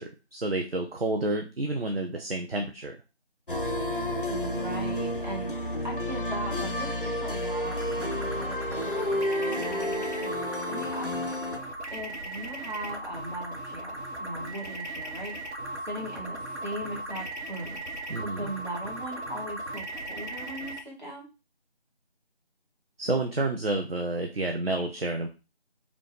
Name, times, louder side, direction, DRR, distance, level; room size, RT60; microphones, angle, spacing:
voice 1, 0.0-3.0 18.1-18.5 23.0-25.3, right 2 dB, 60° right, 4 dB, 0.6 m, -30 dB
sound 1, 3.5-11.6, left 1 dB, 50° left, 0.5 m, -31 dB
voice 2, 4.2-10.4 10.7-11.4 11.9-15.4 15.8-17.8 18.2-21.3, right 1 dB, 40° right, -3 dB, 1.6 m, -39 dB
sound 2, 7.6-20.8, right 1 dB, 85° right, 1.1 m, -37 dB
5.0 x 2.2 x 3.2 m, 0.30 s
figure-of-eight pair, 175°, 33 cm